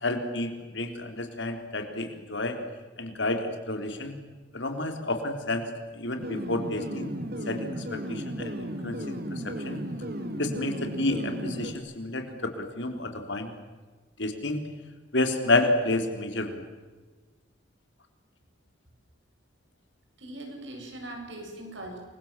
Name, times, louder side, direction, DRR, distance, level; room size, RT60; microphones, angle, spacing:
voice 1, 0.0-2.6 3.0-4.1 4.5-5.6 5.9-7.1 7.5-9.8 10.4-13.5 14.2-14.6 15.1-16.6, left 2 dB, 70° left, 6 dB, 4.0 m, -30 dB
sound 1, 6.2-11.7, right 1 dB, 50° right, 2.5 m, -35 dB
voice 2, 20.2-22.0, right 1 dB, 75° right, 2 dB, 7.9 m, -40 dB
28.5 x 23.5 x 7.6 m, 1.3 s
head